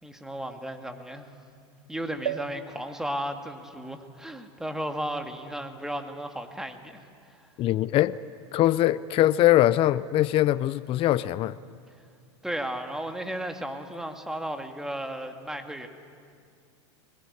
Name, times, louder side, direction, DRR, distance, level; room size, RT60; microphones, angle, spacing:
voice 1, 0.0-1.3 1.9-7.0 12.4-15.9, right 1 dB, 5° right, 2.1 m, -34 dB
sound 1, 2.3-5.9 6.5-6.6 6.8-6.9, right 7 dB, 90° right, 1.3 m, -40 dB
voice 2, 7.6-8.2 8.5-11.6, left 14 dB, 40° left, 0.6 m, -22 dB
22.0 x 20.5 x 9.9 m
hypercardioid pair, 100°, 15 cm